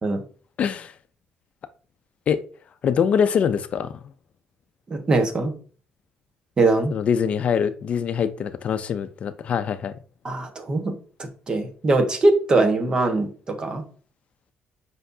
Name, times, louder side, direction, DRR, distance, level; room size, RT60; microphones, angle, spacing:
voice 1, 0.6-0.9 2.3-2.4 2.8-4.0 6.9-9.9, left 7 dB, 45° left, 11 dB, 0.5 m, -23 dB
voice 2, 4.9-5.5 6.6-6.9 10.2-13.8, right 2 dB, 30° right, 6 dB, 1.3 m, -22 dB
7.9 x 5.4 x 2.7 m, 0.41 s
cardioid pair, 135°, 3 cm